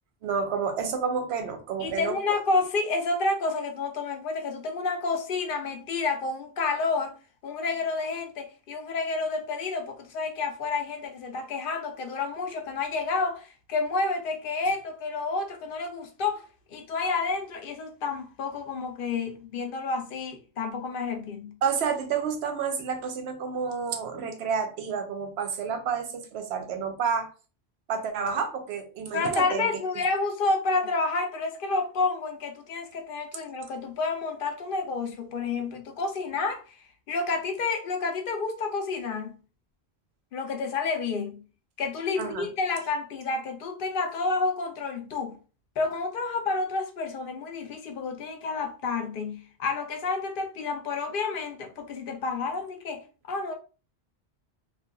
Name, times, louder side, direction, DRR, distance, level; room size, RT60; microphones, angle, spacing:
voice 1, 0.2-2.2 21.6-27.3 27.9-29.7 42.2-42.5, right 6 dB, 85° right, 0.8 m, -30 dB
voice 2, 1.8-7.1 7.4-21.5 29.1-36.6 37.1-39.4 40.3-41.4 41.8-45.4 45.8-53.5, left 3 dB, 65° left, 0.7 m, -30 dB
2.8 x 2.4 x 2.2 m
omnidirectional pair, 1.1 m